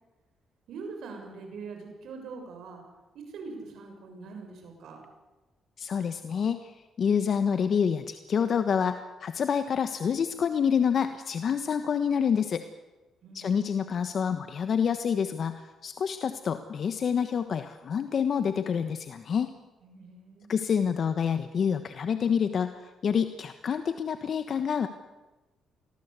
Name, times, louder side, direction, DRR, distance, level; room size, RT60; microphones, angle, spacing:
voice 1, 0.7-2.8 3.1-5.0 13.2-13.6 19.8-20.5, right 4 dB, 75° right, 3 dB, 6.7 m, -43 dB
voice 2, 5.8-6.6 7.0-12.6 13.3-19.5 20.5-22.7 23.0-24.9, left 7 dB, 55° left, 9 dB, 1.3 m, -27 dB
25.0 x 18.5 x 8.3 m, 1.1 s
cardioid pair, 90°, 0 cm